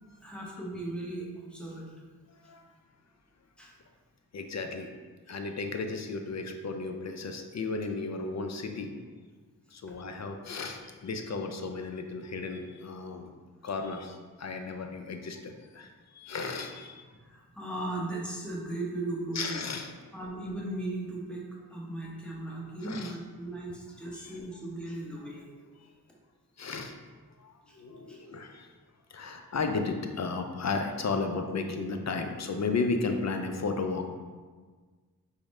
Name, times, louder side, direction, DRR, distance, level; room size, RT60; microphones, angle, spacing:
voice 1, 0.0-1.9 2.4-2.5 3.6-3.7 17.1-19.7 20.1-25.5 27.7-27.8 28.1-28.2, right 2 dB, 5° left, -4 dB, 0.9 m, -37 dB
voice 2, 2.3-2.7 4.3-4.9 5.3-9.0 9.7-13.3 13.6-17.2 19.3-19.9 22.3-22.4 22.8-23.1 24.1-24.4 25.8-25.9 26.6-26.9 27.4-28.7 29.1-34.1, left 4 dB, 45° left, 5 dB, 0.4 m, -34 dB
4.7 x 2.1 x 3.1 m, 1.4 s
cardioid pair, 50°, 39 cm